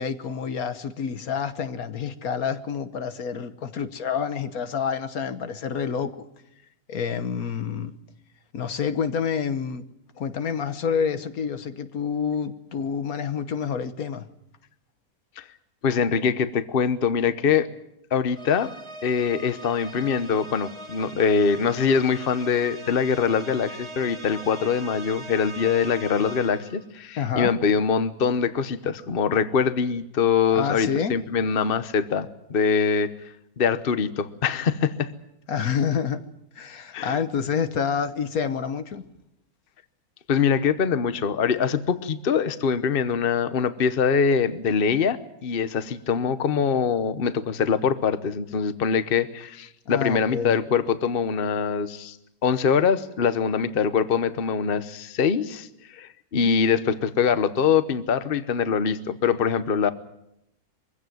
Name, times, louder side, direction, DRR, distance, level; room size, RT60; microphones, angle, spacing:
voice 1, 0.0-6.2 6.9-7.9 8.5-9.8 10.2-14.3 27.2-27.5 30.5-31.1 35.5-36.2 36.6-39.0 49.9-50.6, left 7 dB, 75° left, 11 dB, 1.6 m, -28 dB
voice 2, 15.8-17.7 18.1-18.7 19.0-33.1 33.6-35.1 36.9-37.2 40.3-52.2 52.4-55.7 55.9-59.9, left 6 dB, 45° left, 12 dB, 1.1 m, -23 dB
sound 1, 18.4-26.9, right 1 dB, 20° right, 1.4 m, -41 dB
23.5 x 16.0 x 9.3 m, 0.81 s
omnidirectional pair, 1.5 m